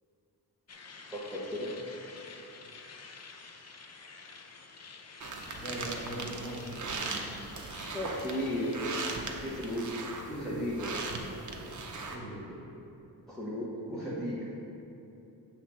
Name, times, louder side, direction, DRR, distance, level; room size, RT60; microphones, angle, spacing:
sound 1, 0.7-10.1, left 4 dB, 40° left, 0.5 m, -50 dB
voice 1, 1.1-1.7 7.9-8.8 9.4-10.9 13.3-14.5, left 1 dB, ahead, -10 dB, 0.9 m, -35 dB
sound 2, 5.2-12.2, right 3 dB, 45° right, 0.7 m, -39 dB
voice 2, 5.6-7.2 10.3-10.7 12.1-12.7 13.9-14.2, right 1 dB, 15° left, -6 dB, 1.5 m, -40 dB
8.0 x 3.5 x 6.1 m, 2.8 s
wide cardioid pair, 160°, 40 cm